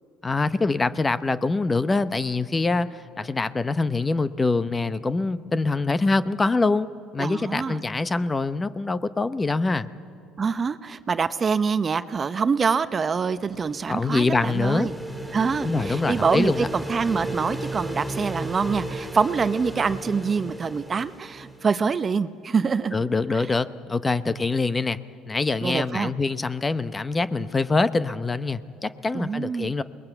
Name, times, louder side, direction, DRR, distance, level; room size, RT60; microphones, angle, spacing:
voice 1, 0.2-6.9 7.1-9.9 13.9-14.9 15.6-16.7 22.9-25.0 25.3-29.8, left 3 dB, 20° left, 14 dB, 0.8 m, -24 dB
voice 2, 7.2-7.8 10.4-14.9 15.3-23.0 23.3-23.4 24.3-24.4 25.6-26.1 27.4-27.5 29.1-29.7, right 5 dB, 30° right, 13 dB, 0.7 m, -25 dB
sound 1, 13.2-22.0, right 1 dB, ahead, 1.8 m, -34 dB
27.5 x 20.5 x 8.0 m, 2.3 s
supercardioid pair, 85°, 0 cm